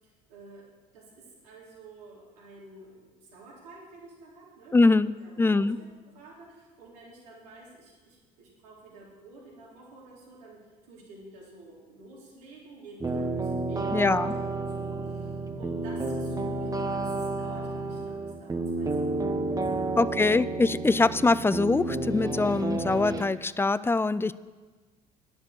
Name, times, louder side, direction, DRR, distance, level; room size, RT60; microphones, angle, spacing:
voice 1, 0.0-5.7 6.1-19.9, right 2 dB, 80° right, -5 dB, 3.8 m, -50 dB
voice 2, 4.7-5.1 5.4-5.8 13.9-14.3 20.0-24.3, left 3 dB, 10° left, 17 dB, 0.4 m, -23 dB
sound 1, 13.0-23.2, right 2 dB, 20° right, 1.1 m, -31 dB
11.0 x 6.8 x 7.9 m, 1.3 s
hypercardioid pair, 65°, 20 cm